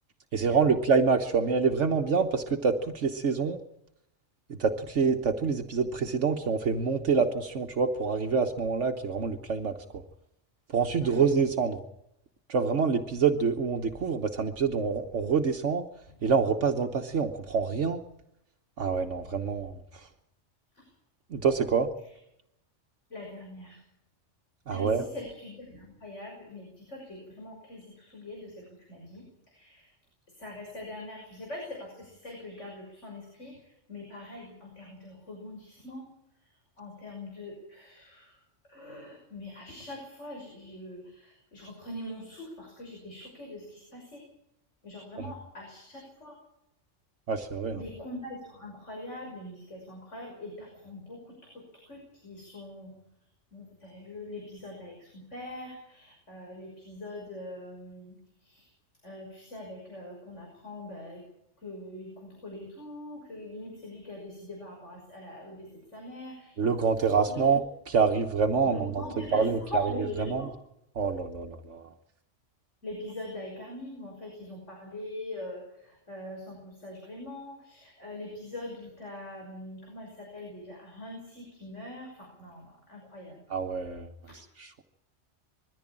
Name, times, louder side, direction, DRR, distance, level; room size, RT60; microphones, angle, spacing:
voice 1, 0.3-3.6 4.5-9.8 10.7-11.8 12.5-15.8 16.2-18.0 18.8-20.1 21.3-21.9 24.7-25.1 45.2-45.3 47.3-47.8 66.6-70.5 70.9-71.8 83.5-84.8, right 5 dB, 75° right, 4 dB, 1.5 m, -26 dB
voice 2, 23.1-23.7 24.7-24.9 25.1-26.7 26.9-27.8 28.1-28.5 28.9-29.2 29.6-29.7 30.4-31.9 32.2-33.5 33.9-36.1 36.8-38.2 38.7-41.0 41.5-44.2 44.8-46.3 47.8-51.2 51.9-52.0 52.2-52.9 53.5-58.1 59.0-61.2 61.6-65.7 65.9-66.3 67.2-67.3 68.7-69.4 69.7-70.5 72.8-75.6 76.1-82.6 82.9-83.3, left 1 dB, 75° left, 0 dB, 6.4 m, -42 dB
22.0 x 14.5 x 8.8 m, 0.80 s
omnidirectional pair, 1.3 m